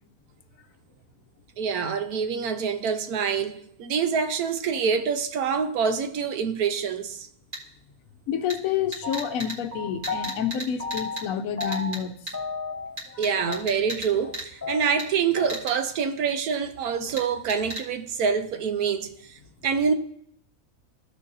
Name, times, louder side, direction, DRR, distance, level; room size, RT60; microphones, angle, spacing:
voice 1, 1.6-7.3 13.2-19.4 19.6-19.9, right 6 dB, 90° right, 1.3 m, -26 dB
sound 1, 7.5-7.6 8.5-8.6 8.9-9.6 10.0-10.7 10.9-11.2 11.6-12.0 12.3-12.4 13.0-14.1 14.3-14.4 15.0-15.1 15.5-15.7 17.2-17.3 17.5-17.8, right 1 dB, 35° right, 1.6 m, -33 dB
voice 2, 8.3-12.1 13.1-13.3, left 8 dB, 70° left, 1.0 m, -29 dB
sound 2, 9.0-10.4 10.8-11.3 11.6-12.1 12.3-13.2 13.5-13.6 13.9-14.0 14.2-14.3 14.6-15.6, left 4 dB, 10° right, 2.3 m, -33 dB
14.5 x 6.3 x 2.7 m
omnidirectional pair, 1.5 m